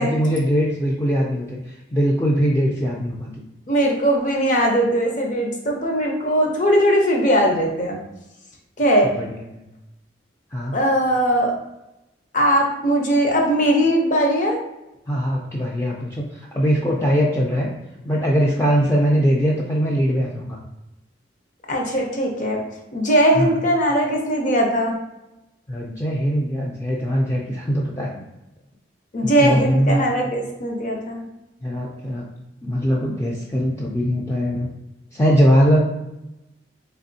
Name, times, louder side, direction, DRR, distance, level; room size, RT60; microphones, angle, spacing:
voice 1, 0.0-3.3 9.1-9.6 10.5-10.8 15.1-17.7 18.0-20.6 23.3-23.6 25.7-28.1 29.2-30.0 31.6-32.2 32.6-34.7 35.1-35.8, equal, 15° left, -3 dB, 0.4 m, -21 dB
voice 2, 3.7-8.0 8.8-9.1 10.7-11.5 12.3-14.6 21.7-22.6 22.9-24.9 29.1-31.2, equal, 45° left, 0 dB, 0.7 m, -19 dB
3.5 x 3.3 x 2.7 m, 0.94 s
head